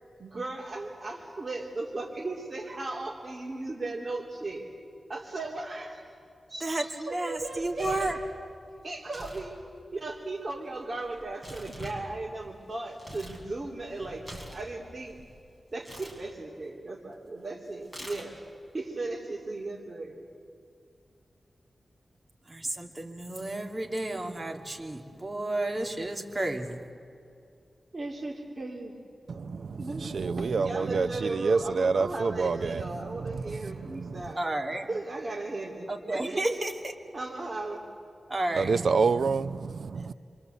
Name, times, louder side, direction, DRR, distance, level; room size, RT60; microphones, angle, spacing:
voice 1, 0.2-4.7 5.1-6.0 6.5-8.1 8.8-9.5 9.9-15.2 15.7-18.4 18.7-20.2 27.9-29.0 29.8-34.5 34.9-36.6 37.1-37.8, right 2 dB, 45° right, 3.1 m, -36 dB
voice 2, 6.6-8.2 22.5-26.8 34.4-34.9 35.9-36.9 38.3-38.7, right 1 dB, 30° right, 2.7 m, -32 dB
Tearing, 7.4-8.2 9.0-9.5 9.7-13.4 13.8-15.3 15.8-16.2 17.8-18.5, right 1 dB, 10° right, 5.8 m, -45 dB
voice 3, 29.3-34.3 38.5-40.1, right 4 dB, 75° right, 0.6 m, -28 dB
28.5 x 24.0 x 8.0 m
wide cardioid pair, 85°, 0 cm